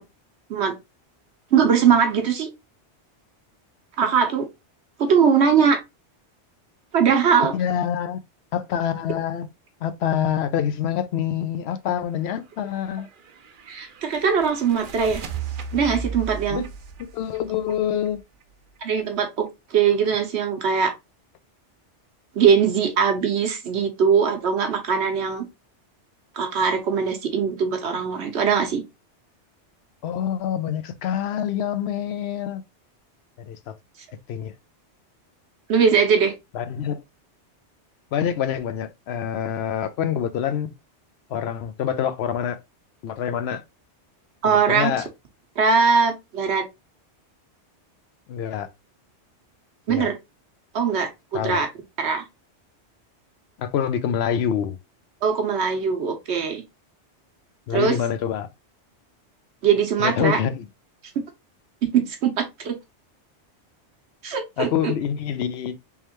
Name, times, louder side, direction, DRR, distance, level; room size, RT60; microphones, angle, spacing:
voice 1, 1.5-2.5 4.0-4.5 5.0-5.8 6.9-7.5 13.7-15.2 15.7-16.6 18.8-20.9 22.3-25.5 26.3-28.8 35.7-36.3 44.4-44.9 45.6-46.6 49.9-50.2 50.7-51.7 52.0-52.2 55.2-56.6 57.7-57.9 59.6-60.4 61.9-62.7 64.2-64.9, right 6 dB, 70° right, 1.2 m, -21 dB
voice 2, 7.5-8.2 8.5-9.5 9.8-13.1 16.5-16.7 17.0-18.2 30.0-32.6 33.4-33.8 34.3-34.5 36.5-37.0 38.1-40.7 41.3-42.6 43.0-43.6 44.4-45.1 48.3-48.7 49.9-50.1 51.3-51.6 53.6-54.8 57.7-58.5 60.0-60.7 64.6-65.8, left 9 dB, 70° left, 0.8 m, -26 dB
sound 1, 12.7-18.4, right 5 dB, 55° right, 0.7 m, -36 dB
3.5 x 3.2 x 2.9 m
omnidirectional pair, 1.2 m